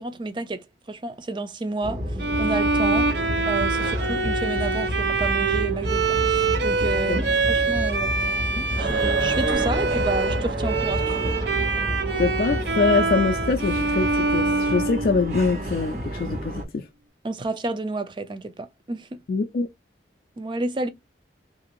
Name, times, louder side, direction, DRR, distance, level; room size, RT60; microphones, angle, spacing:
voice 1, 0.0-3.1 3.5-8.3 8.8-11.4 17.2-19.1 20.4-20.9, right 2 dB, 25° right, 0.4 m, -30 dB
sound 1, 1.8-16.7, equal, 40° right, 0.9 m, -30 dB
Bowed string instrument, 2.2-15.7, right 4 dB, 70° right, 0.6 m, -25 dB
sound 2, 8.7-11.6, right 2 dB, 85° right, 1.2 m, -30 dB
voice 2, 12.2-16.8 19.3-19.7, left 4 dB, 50° left, 0.3 m, -24 dB
2.8 x 2.6 x 2.9 m
head